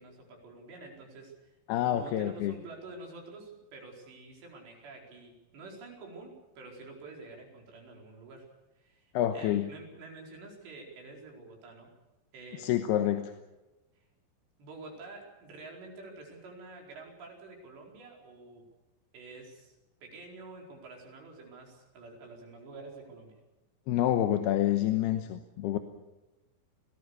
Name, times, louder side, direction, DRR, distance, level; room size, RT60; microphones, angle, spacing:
voice 1, 0.0-1.5 1.8-8.5 8.8-11.9 12.3-12.7 14.6-18.7 19.1-23.4, right 3 dB, 75° right, 0 dB, 6.8 m, -48 dB
voice 2, 1.7-2.5 9.1-9.7 12.6-13.3 23.9-25.8, left 12 dB, 75° left, 7 dB, 2.9 m, -28 dB
28.0 x 19.0 x 6.8 m, 1.0 s
omnidirectional pair, 5.0 m